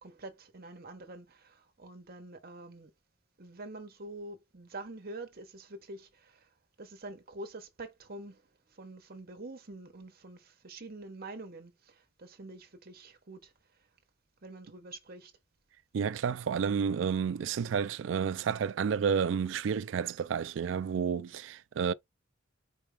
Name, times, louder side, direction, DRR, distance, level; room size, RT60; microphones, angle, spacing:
voice 1, 0.0-2.9 3.4-6.5 6.8-8.4 8.7-13.5 14.4-15.3, right 2 dB, 55° right, 1.2 m, -46 dB
voice 2, 15.9-21.9, right 7 dB, 70° right, 0.3 m, -30 dB
4.6 x 3.3 x 3.3 m
head